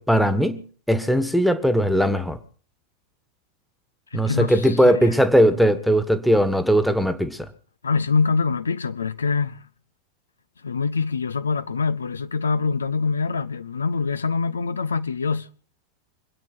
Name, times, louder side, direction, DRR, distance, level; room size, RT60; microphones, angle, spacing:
voice 1, 0.0-2.4 4.1-7.5, equal, ahead, 1.5 m, -19 dB
voice 2, 4.1-5.1 7.8-9.6 10.6-15.5, left 4 dB, 75° left, 0.7 m, -24 dB
25.5 x 9.1 x 6.1 m
figure-of-eight pair, 90°, 0 cm